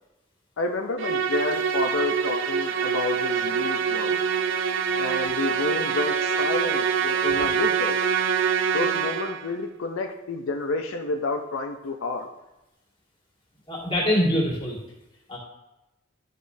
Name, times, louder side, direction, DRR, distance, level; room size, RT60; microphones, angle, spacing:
voice 1, 0.6-4.2 5.0-8.0 8.7-12.3, left 3 dB, 90° left, 5 dB, 0.5 m, -30 dB
Musical instrument, 1.0-9.5, right 6 dB, 75° right, 0.5 m, -25 dB
voice 2, 13.7-14.8 15.3-15.4, equal, 25° left, -4 dB, 1.9 m, -23 dB
11.0 x 5.1 x 2.7 m, 0.96 s
head